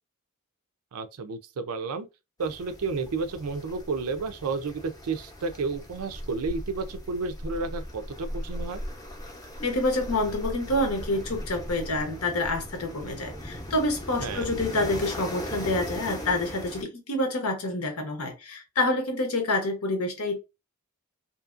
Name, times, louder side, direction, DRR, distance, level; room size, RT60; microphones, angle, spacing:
voice 1, 0.9-2.1 2.4-8.8 14.2-14.5, right 4 dB, 85° right, 0.4 m, -31 dB
sound 1, 2.4-16.8, equal, 15° left, 0.6 m, -38 dB
voice 2, 9.6-20.4, left 2 dB, 90° left, 0.9 m, -27 dB
2.7 x 2.5 x 2.4 m
head